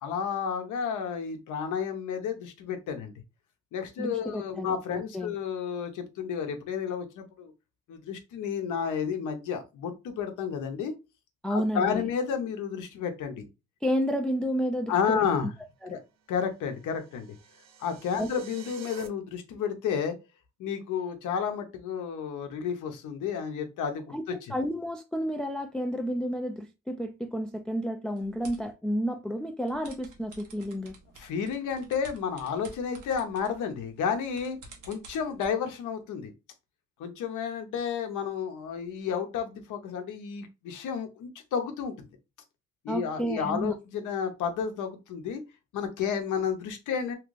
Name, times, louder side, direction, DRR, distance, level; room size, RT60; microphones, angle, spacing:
voice 1, 0.0-3.1 3.7-7.5 7.9-10.9 11.5-13.5 14.9-15.5 15.9-16.0 16.3-17.3 17.8-20.2 20.6-24.1 24.4-24.5 31.2-34.6 34.9-36.3 37.0-42.1 42.8-45.4 45.7-47.1, left 7 dB, 80° left, 0.8 m, -31 dB
voice 2, 4.0-4.8 5.1-5.4 11.4-12.1 13.8-15.2 15.8-16.0 18.2-18.3 24.1-24.2 24.5-30.9 42.9-43.7, equal, 5° left, 0.3 m, -31 dB
sound 1, 16.5-19.1, right 3 dB, 60° right, 0.6 m, -48 dB
sound 2, 28.2-28.7 29.7-35.5, right 3 dB, 85° right, 1.1 m, -51 dB
3.0 x 2.5 x 3.1 m
cardioid pair, 90°, 30 cm